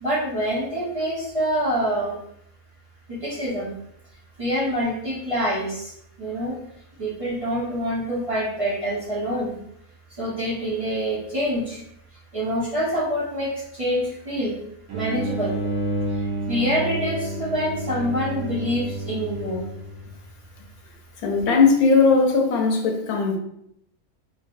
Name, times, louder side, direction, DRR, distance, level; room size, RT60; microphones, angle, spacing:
voice 1, 0.0-2.2 3.1-3.7 4.4-5.9 6.2-6.6 7.0-9.5 10.1-11.8 12.3-14.5 14.9-15.6 16.1-19.7, equal, 45° right, -7 dB, 0.4 m, -26 dB
sound 1, 14.9-20.3, right 2 dB, 80° right, 1.2 m, -30 dB
voice 2, 21.2-23.4, left 4 dB, 80° left, 2 dB, 1.1 m, -18 dB
3.1 x 2.6 x 2.5 m, 0.74 s
omnidirectional pair, 1.6 m